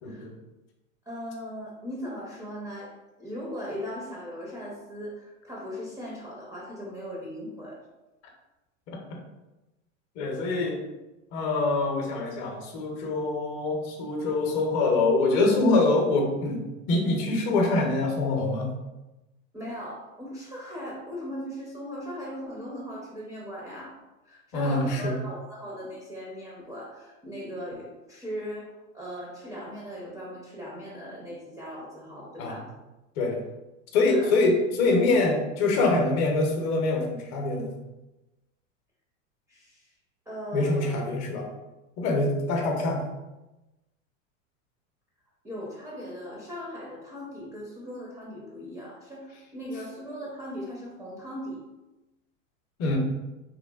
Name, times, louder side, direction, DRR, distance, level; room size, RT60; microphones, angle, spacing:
voice 1, 0.0-0.3 8.9-9.2 10.2-10.8 11.3-18.7 24.5-25.2 32.4-32.6 33.2-33.4 33.9-37.7 40.5-41.5 42.0-43.0 52.8-53.0, left 2 dB, 45° left, 2 dB, 0.6 m, -25 dB
voice 2, 1.1-2.9 3.2-7.8 19.5-24.0 24.2-28.7 28.9-32.7 34.1-34.3 39.5-39.9 40.3-41.0 45.4-51.6, equal, 10° right, -5 dB, 0.4 m, -38 dB
2.9 x 2.1 x 2.2 m, 1.0 s
hypercardioid pair, 115°, 39 cm